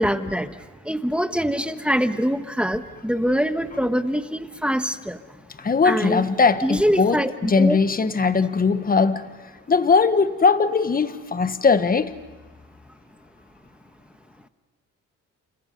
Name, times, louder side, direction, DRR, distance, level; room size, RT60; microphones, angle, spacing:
voice 1, 0.0-5.2 5.8-6.3 6.6-7.8, equal, 5° right, 1.3 m, -24 dB
voice 2, 5.6-9.3 9.7-12.2, left 4 dB, 30° left, 1.3 m, -20 dB
29.5 x 28.5 x 5.4 m
cardioid pair, 90°, 30 cm